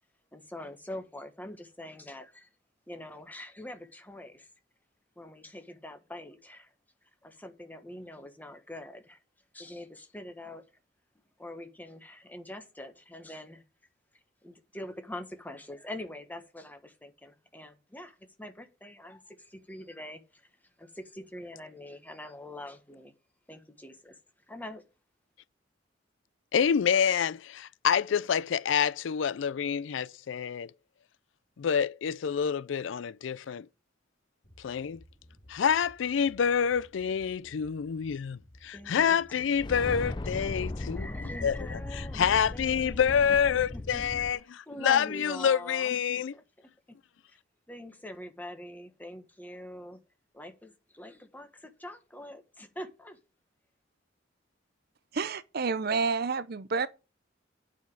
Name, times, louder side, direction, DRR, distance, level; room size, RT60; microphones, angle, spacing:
voice 1, 0.3-2.5 2.9-4.5 5.2-6.7 7.2-9.2 9.5-10.6 11.4-13.6 14.4-20.5 20.8-23.1 23.5-24.2 24.5-24.8 38.7-39.9 40.5-43.3 43.9-44.0 44.7-46.4 47.7-50.0 50.3-53.2, left 1 dB, 10° left, 1.4 m, -44 dB
voice 2, 26.5-30.7 31.6-33.7 34.6-35.0 35.5-41.1 41.4-46.3, left 7 dB, 85° left, 0.4 m, -27 dB
sound 1, 34.4-41.5, equal, 65° left, 3.1 m, -58 dB
sound 2, 39.5-44.3, left 2 dB, 25° left, 0.6 m, -37 dB
voice 3, 55.1-56.9, right 4 dB, 55° right, 0.6 m, -29 dB
9.3 x 5.1 x 7.2 m
head